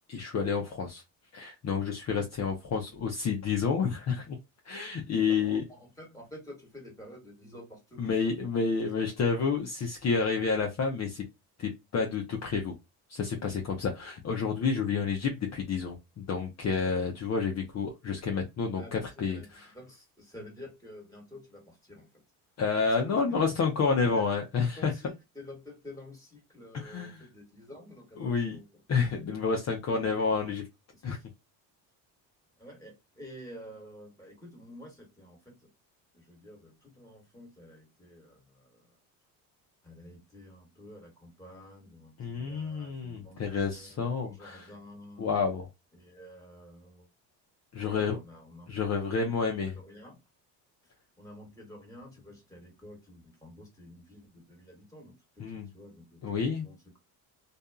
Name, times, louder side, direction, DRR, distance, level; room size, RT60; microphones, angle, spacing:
voice 1, 0.1-1.0 1.3-4.4 4.6-5.6 8.0-11.2 11.6-12.7 13.1-19.7 22.6-24.9 26.7-27.2 28.2-28.6 28.9-30.6 31.0-31.2 42.2-44.7 45.2-45.7 47.7-48.2 48.7-49.7 55.4-55.7 56.2-56.7, left 5 dB, 40° left, 0.7 m, -29 dB
voice 2, 5.3-8.1 8.9-9.0 18.8-22.2 23.1-23.4 24.0-24.3 24.7-28.6 29.9-30.5 30.9-31.3 32.6-35.7 36.1-39.0 39.8-45.3 45.9-47.1 47.8-48.8 49.1-50.2 50.8-55.4 55.7-57.0, left 1 dB, 10° left, 1.5 m, -50 dB
2.6 x 2.3 x 2.3 m
supercardioid pair, 90°, 42 cm